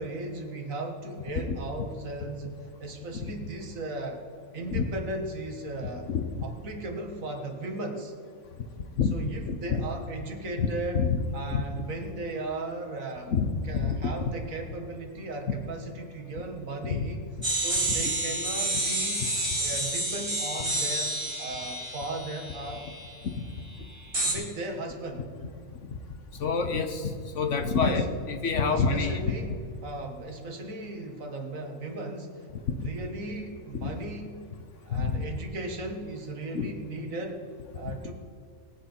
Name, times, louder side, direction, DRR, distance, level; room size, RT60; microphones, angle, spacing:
voice 1, 0.0-4.2 4.5-6.1 6.4-8.1 9.1-11.1 11.3-13.3 13.7-17.2 17.5-19.2 19.6-22.9 24.2-25.3 27.8-28.1 28.6-34.5 34.9-37.4 37.7-38.1, right 2 dB, 65° right, 3 dB, 1.9 m, -36 dB
voice 2, 9.5-9.8 10.6-10.7 10.9-11.2 11.5-11.6 13.3-13.4 13.7-14.0 16.8-17.1 17.9-18.0 23.4-23.5 26.4-27.1 27.3-29.3 32.8-32.9 33.8-33.9 34.9-35.2 36.5-36.7 37.8-37.9, left 5 dB, 60° left, 7 dB, 1.2 m, -27 dB
sound 1, 17.4-23.1 24.1-24.3, right 1 dB, 20° right, 3.0 m, -29 dB
20.0 x 8.0 x 4.4 m, 2.3 s
omnidirectional pair, 1.5 m